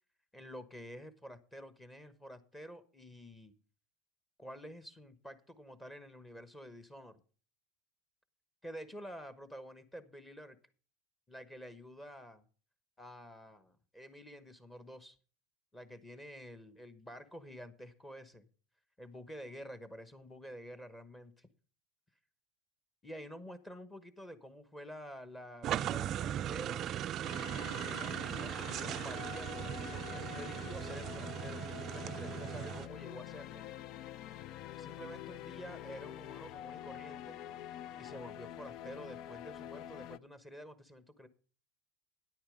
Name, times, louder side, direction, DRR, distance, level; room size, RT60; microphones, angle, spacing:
voice 1, 0.3-3.5 4.4-7.2 8.6-10.6 11.3-12.5 13.0-15.2 15.7-18.5 19.0-21.5 23.0-26.9 27.7-33.6 34.8-37.4 38.0-41.3, equal, 10° left, 12 dB, 1.2 m, -49 dB
sound 1, 25.6-32.9, right 11 dB, 40° right, 0.4 m, -38 dB
sound 2, 27.2-40.2, left 11 dB, 50° left, 0.4 m, -46 dB
10.0 x 8.7 x 5.0 m, 0.39 s
supercardioid pair, 125°, 0 cm